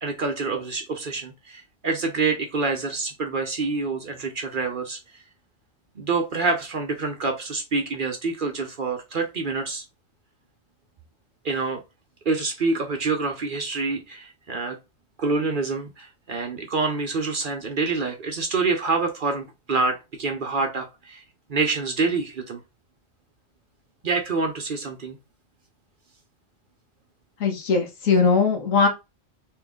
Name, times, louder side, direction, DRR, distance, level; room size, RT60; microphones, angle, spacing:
voice 1, 0.0-5.0 6.0-9.8 11.4-11.8 12.3-14.8 15.2-21.2 21.5-22.6 24.0-25.2, right 4 dB, 50° right, 4 dB, 0.7 m, -26 dB
voice 2, 27.4-28.9, left 5 dB, 90° left, 4 dB, 1.4 m, -20 dB
3.6 x 3.0 x 3.5 m, 0.26 s
omnidirectional pair, 1.4 m